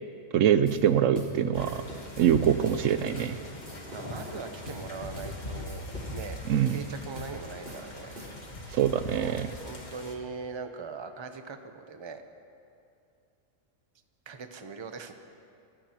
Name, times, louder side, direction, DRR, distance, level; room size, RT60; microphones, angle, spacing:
voice 1, 0.3-1.8 2.2-3.4 6.5-6.8 8.7-9.5, right 9 dB, 75° right, 11 dB, 0.9 m, -24 dB
sound 1, 0.7-0.9 1.1-1.4 1.6-2.3 2.6-2.9 3.1-3.4 3.6-4.3 4.7-4.9 5.2-5.4 5.7-6.3 6.7-6.9 7.2-7.4 7.6-8.6, equal, 45° right, 4.8 m, -44 dB
sound 2, 1.5-10.1, left 1 dB, 35° left, 1.6 m, -41 dB
voice 2, 3.6-5.9 6.1-6.4 6.7-8.1 9.1-12.2 14.3-15.1, right 4 dB, 25° right, 7 dB, 0.7 m, -41 dB
29.0 x 14.5 x 3.0 m, 2.6 s
omnidirectional pair, 1.4 m